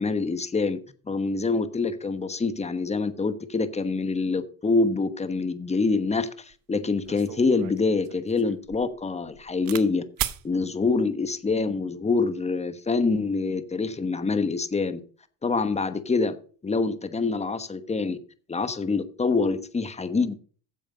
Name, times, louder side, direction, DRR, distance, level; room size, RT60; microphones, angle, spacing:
voice 1, 0.0-10.0 10.4-15.0 15.4-16.4 16.6-18.2 18.5-20.3, left 4 dB, 15° left, 11 dB, 1.1 m, -26 dB
sound 1, 6.5-6.6 7.0-9.9 10.2-10.4 11.3-11.7, right 13 dB, 50° right, 1.0 m, -36 dB
9.3 x 7.5 x 5.0 m, 0.41 s
supercardioid pair, 100°, 44 cm